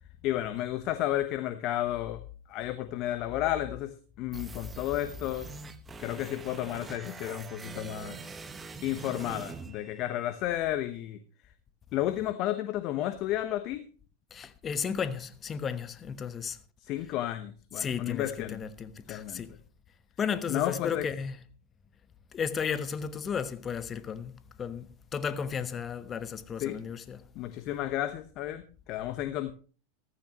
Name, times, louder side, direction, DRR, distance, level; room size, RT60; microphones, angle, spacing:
voice 1, 0.2-2.2 2.5-5.5 6.0-8.2 8.8-11.2 11.9-13.9 16.9-18.6 19.1-19.4 20.5-21.1 26.6-26.8 27.3-29.5, left 13 dB, 45° left, 1.0 m, -32 dB
sound 1, 4.3-10.3, right 4 dB, 20° right, 1.3 m, -44 dB
voice 2, 14.3-16.6 17.8-19.5 20.2-21.4 22.3-24.3 24.6-27.2, left 6 dB, 25° left, 1.1 m, -34 dB
15.0 x 14.0 x 3.1 m
hypercardioid pair, 95°, 0 cm